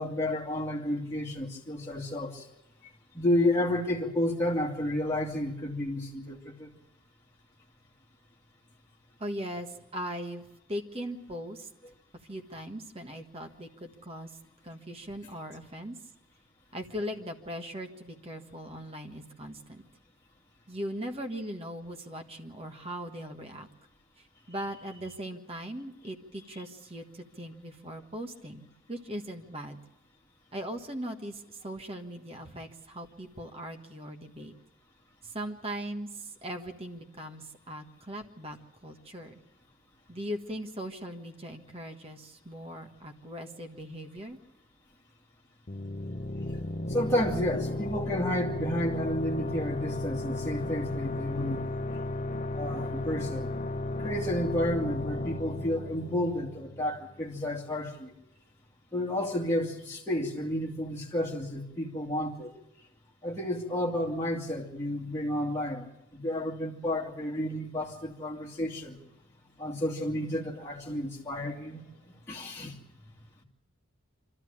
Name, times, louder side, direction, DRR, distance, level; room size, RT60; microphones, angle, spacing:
voice 1, 0.0-2.5 3.1-6.7 46.9-51.6 52.5-53.6 54.0-58.1 58.9-62.5 63.2-69.0 69.6-71.9 72.3-72.8, left 1 dB, 15° left, 2.3 m, -31 dB
voice 2, 9.2-11.7 12.2-14.3 14.6-16.0 16.7-19.8 20.7-23.7 24.2-29.8 30.5-34.5 35.2-38.6 38.8-39.4 40.1-44.4, equal, 30° right, 1.5 m, -39 dB
sound 1, 45.7-57.1, left 2 dB, 40° left, 0.9 m, -34 dB
25.0 x 13.5 x 8.7 m
head